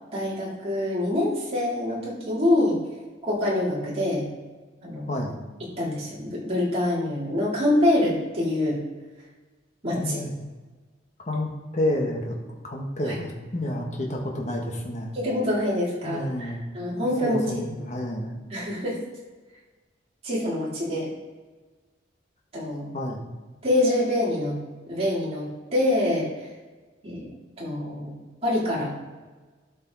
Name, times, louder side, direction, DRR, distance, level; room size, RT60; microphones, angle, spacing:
voice 1, 0.1-2.8 3.2-4.3 4.8-5.2 5.8-8.8 9.8-10.2 13.0-13.2 15.1-17.7 18.5-19.0 20.2-21.1 22.5-22.9 23.6-24.6 24.9-26.3 27.0-27.3 27.6-28.1 28.4-28.9, left 1 dB, 30° right, -6 dB, 3.2 m, -25 dB
voice 2, 5.1-5.4 9.9-10.3 11.2-12.4 12.6-15.2 16.0-16.6 17.0-18.4 22.9-23.3, left 1 dB, 40° left, 0 dB, 1.4 m, -30 dB
12.5 x 5.5 x 4.1 m, 1.3 s
head